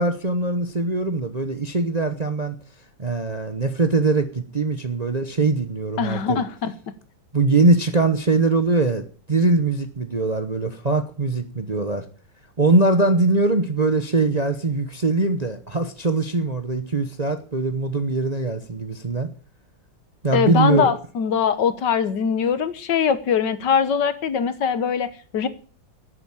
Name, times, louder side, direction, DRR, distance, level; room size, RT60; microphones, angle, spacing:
voice 1, 0.0-2.5 3.0-6.4 7.3-12.0 12.6-19.3 20.2-20.9, right 3 dB, 30° right, 8 dB, 0.9 m, -22 dB
voice 2, 6.0-6.7 20.3-25.5, left 6 dB, 70° left, 13 dB, 1.7 m, -22 dB
11.0 x 9.2 x 9.0 m, 0.41 s
omnidirectional pair, 2.1 m